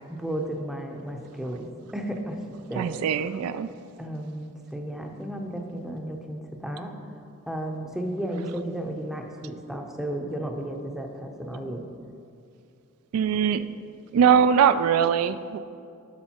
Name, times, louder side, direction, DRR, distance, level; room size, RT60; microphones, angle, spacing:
voice 1, 0.1-1.7 1.9-2.4 2.7-3.0 4.0-6.9 7.5-11.8, right 1 dB, ahead, 2 dB, 0.6 m, -33 dB
voice 2, 2.8-3.7 13.1-13.6 14.1-15.6, right 7 dB, 80° right, 15 dB, 0.3 m, -21 dB
11.5 x 6.4 x 2.9 m, 2.5 s
head